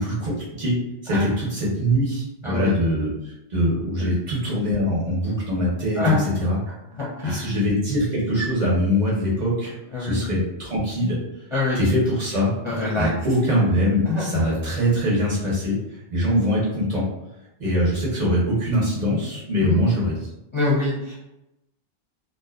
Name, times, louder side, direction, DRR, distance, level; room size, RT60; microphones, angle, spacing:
voice 1, 0.0-0.7 1.0-6.6 7.2-11.2 11.7-12.5 13.0-17.0 17.6-20.3, equal, 45° right, -6 dB, 0.8 m, -23 dB
voice 2, 6.9-7.5 9.9-10.2 11.5-11.8 12.6-13.1 14.1-14.4 19.6-19.8 20.5-21.1, left 3 dB, 35° left, -8 dB, 0.5 m, -24 dB
2.5 x 2.2 x 2.2 m, 0.90 s
omnidirectional pair, 1.1 m